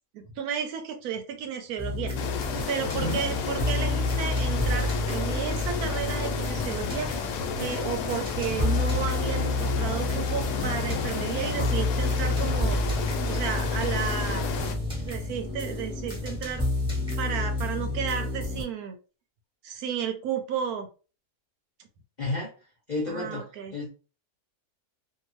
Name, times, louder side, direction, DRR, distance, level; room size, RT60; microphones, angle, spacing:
voice 1, 0.1-2.1 2.7-7.1 7.6-12.8 13.3-14.4 15.0-16.6 17.2-19.0 19.6-20.9 23.1-23.7, right 7 dB, 75° right, 6 dB, 1.1 m, -33 dB
sound 1, 1.8-18.6, left 2 dB, 5° right, 1.0 m, -29 dB
sound 2, 2.2-14.8, left 6 dB, 90° left, 1.2 m, -32 dB
voice 2, 22.2-22.5 22.9-23.9, left 2 dB, 40° left, -3 dB, 0.7 m, -31 dB
2.7 x 2.6 x 3.0 m, 0.34 s
omnidirectional pair, 1.7 m